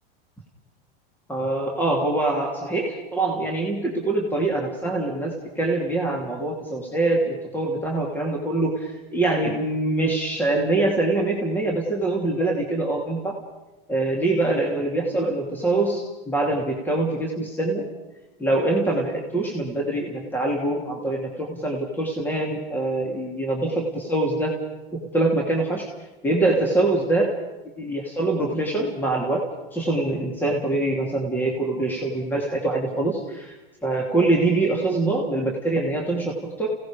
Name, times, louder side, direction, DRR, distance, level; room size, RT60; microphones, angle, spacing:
voice 1, 1.3-13.4 13.9-17.9 18.4-24.6 24.9-25.9 26.2-27.4 27.8-33.6 33.8-36.8, right 2 dB, 5° left, 0 dB, 2.8 m, -24 dB
29.0 x 17.5 x 5.2 m, 1.0 s
supercardioid pair, 140°, 30 cm